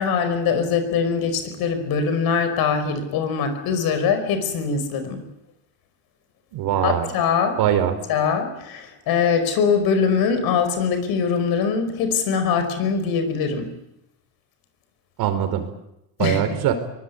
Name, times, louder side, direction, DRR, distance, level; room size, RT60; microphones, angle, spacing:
voice 1, 0.0-5.2 6.8-7.6 8.1-13.7 16.2-16.4, left 6 dB, 70° left, 9 dB, 5.2 m, -22 dB
voice 2, 6.5-7.1 7.6-7.9 15.2-15.6 16.2-16.7, right 10 dB, 70° right, 8 dB, 4.5 m, -21 dB
23.0 x 19.5 x 9.6 m, 0.86 s
cardioid pair, 115°, 38 cm